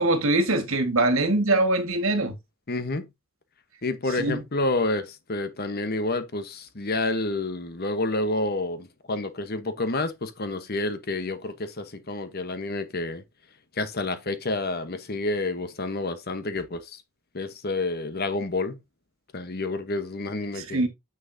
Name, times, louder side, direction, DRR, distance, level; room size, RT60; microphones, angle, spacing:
voice 1, 0.0-2.4 4.2-4.4 20.6-20.9, right 2 dB, 70° right, 1.8 m, -23 dB
voice 2, 2.7-3.0 3.8-13.2 13.8-17.0 17.3-18.8 19.3-20.8, left 2 dB, 45° left, 1.1 m, -29 dB
9.6 x 6.0 x 2.7 m
head